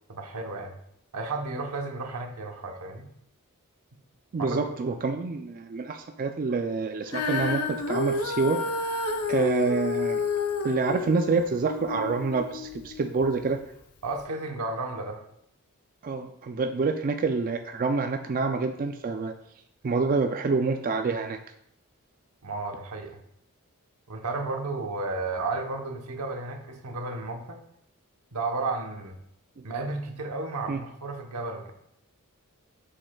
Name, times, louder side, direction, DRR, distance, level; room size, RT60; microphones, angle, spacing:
voice 1, 0.1-0.7 1.1-3.1 4.4-4.7 14.0-15.2 22.4-23.2 24.1-27.6 28.3-29.2 29.6-31.7, right 3 dB, 85° right, 3 dB, 1.0 m, -33 dB
voice 2, 4.3-8.6 9.3-10.2 10.6-13.6 16.0-19.3 19.8-21.4 29.6-29.7 30.7-30.8, right 4 dB, 40° right, 5 dB, 0.4 m, -27 dB
Female singing, 7.1-13.4 14.1-14.2, left 3 dB, 85° left, 0.7 m, -30 dB
7.5 x 6.5 x 2.3 m, 0.75 s
head